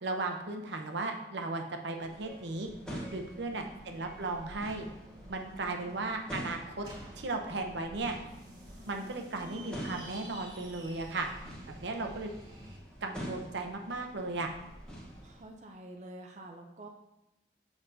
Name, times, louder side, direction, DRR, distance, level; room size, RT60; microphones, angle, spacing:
voice 1, 0.0-2.7 3.1-4.9 5.3-6.9 7.1-8.2 8.9-11.3 11.8-12.3 13.0-14.5, right 3 dB, 85° right, 4 dB, 0.8 m, -36 dB
sound 1, 2.0-15.4, equal, 5° left, 1.1 m, -47 dB
sound 2, 2.3-12.8, right 1 dB, 25° right, 1.1 m, -52 dB
voice 2, 3.3-3.8 5.4-6.0 11.2-11.3 11.7-12.1 15.2-16.9, right 1 dB, 40° right, 2 dB, 0.5 m, -49 dB
7.6 x 5.9 x 2.7 m, 0.92 s
head